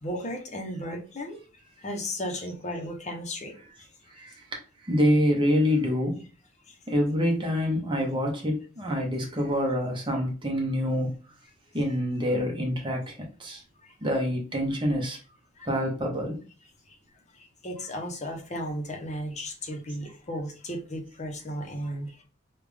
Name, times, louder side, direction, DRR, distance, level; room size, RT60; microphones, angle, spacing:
voice 1, 0.0-4.1 6.7-6.8 12.2-12.3 13.8-14.0 15.6-15.7 16.9-17.0 17.3-22.2, equal, 35° left, 2 dB, 0.8 m, -35 dB
voice 2, 4.1-6.2 6.9-11.2 11.7-13.6 14.0-15.2 15.7-16.4, equal, 25° right, 0 dB, 0.9 m, -26 dB
3.5 x 2.4 x 3.3 m, 0.35 s
head